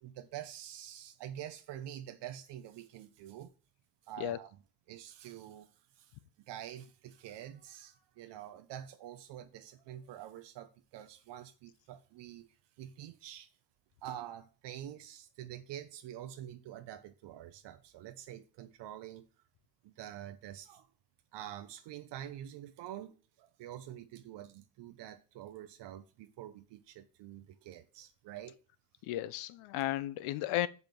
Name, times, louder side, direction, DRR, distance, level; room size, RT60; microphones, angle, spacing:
voice 1, 0.0-3.5 4.1-4.5 4.9-6.2 6.5-12.5 12.8-13.5 14.0-19.3 19.8-20.9 21.3-28.6, right 11 dB, 60° right, 0.8 m, -47 dB
voice 2, 29.0-30.7, left 14 dB, 90° left, 0.8 m, -34 dB
7.2 x 5.4 x 6.1 m
cardioid pair, 145°, 49 cm